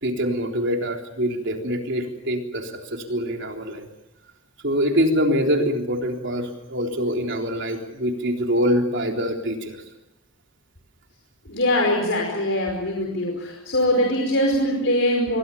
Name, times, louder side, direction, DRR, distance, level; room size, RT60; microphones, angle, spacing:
voice 1, 0.0-3.9 4.6-9.8, equal, 55° right, 3 dB, 3.7 m, -24 dB
voice 2, 11.5-15.4, left 1 dB, 60° left, 0 dB, 5.2 m, -22 dB
28.0 x 23.0 x 7.2 m, 0.89 s
head